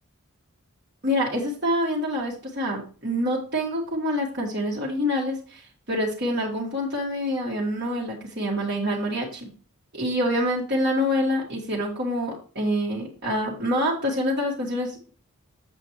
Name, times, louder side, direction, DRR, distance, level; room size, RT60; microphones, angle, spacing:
voice 1, 1.0-5.6 5.9-9.5 9.9-15.1, equal, 50° right, -4 dB, 1.8 m, -26 dB
8.1 x 7.1 x 3.1 m, 0.39 s
head